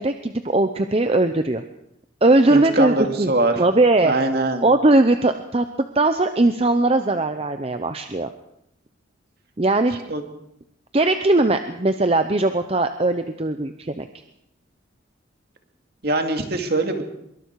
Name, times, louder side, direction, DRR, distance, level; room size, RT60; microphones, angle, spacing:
voice 1, 0.0-1.6 2.2-4.1 4.6-5.6 5.9-8.3 9.6-10.0 10.9-14.1, right 2 dB, 30° right, 8 dB, 0.7 m, -19 dB
voice 2, 2.5-3.5 4.0-4.7 10.1-10.2 16.0-17.0, right 2 dB, 50° right, 4 dB, 2.4 m, -22 dB
24.5 x 23.0 x 4.8 m, 0.78 s
head